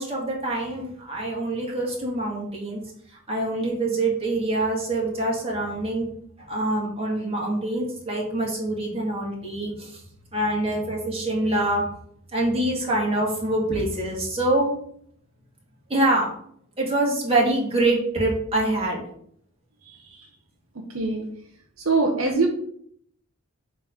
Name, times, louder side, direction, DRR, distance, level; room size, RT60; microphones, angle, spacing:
voice 1, 0.0-2.8 3.3-6.1 6.5-10.0 10.3-11.8 12.3-14.7 15.9-16.3 16.8-19.0, right 2 dB, 25° right, -3 dB, 2.0 m, -25 dB
voice 2, 19.8-20.3 20.7-21.3 21.8-22.5, right 3 dB, 70° right, 2 dB, 1.1 m, -24 dB
7.4 x 3.4 x 5.1 m, 0.65 s
head